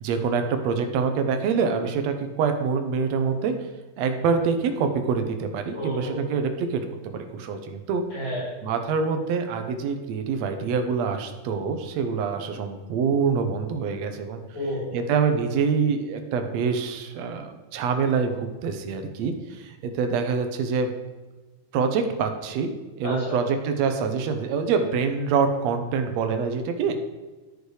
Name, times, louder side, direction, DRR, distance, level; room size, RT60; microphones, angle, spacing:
voice 1, 0.0-3.6 4.0-8.0 8.6-14.4 14.9-20.9 21.7-22.7 23.0-27.0, right 5 dB, 70° right, 6 dB, 1.9 m, -25 dB
voice 2, 5.7-6.2 8.1-8.5 14.5-14.9 23.0-23.4, left 1 dB, 55° left, -7 dB, 4.2 m, -30 dB
10.5 x 6.6 x 4.8 m, 1.2 s
omnidirectional pair, 3.6 m